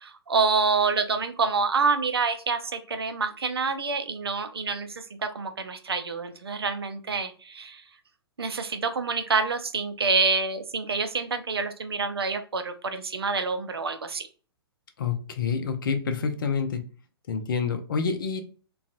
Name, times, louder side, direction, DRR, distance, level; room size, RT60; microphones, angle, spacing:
voice 1, 0.0-7.8 8.4-14.3, right 4 dB, 70° right, 8 dB, 0.5 m, -27 dB
voice 2, 15.0-16.8 17.3-18.4, left 5 dB, 55° left, 6 dB, 0.6 m, -28 dB
3.9 x 2.4 x 2.4 m, 0.38 s
figure-of-eight pair, 115°, 14 cm